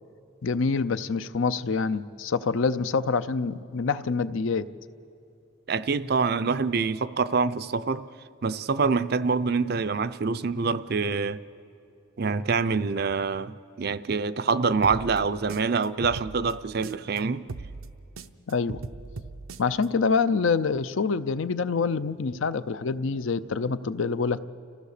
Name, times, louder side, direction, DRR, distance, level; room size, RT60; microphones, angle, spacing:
voice 1, 0.4-4.7 18.5-18.8 19.6-24.4, left 4 dB, 70° left, 0.5 m, -26 dB
voice 2, 5.7-8.0 8.4-11.4 12.2-17.4, right 4 dB, 50° right, 0.5 m, -26 dB
sound 1, 14.8-17.2 17.5-19.9, right 3 dB, 90° right, 0.7 m, -39 dB
30.0 x 15.0 x 6.7 m
head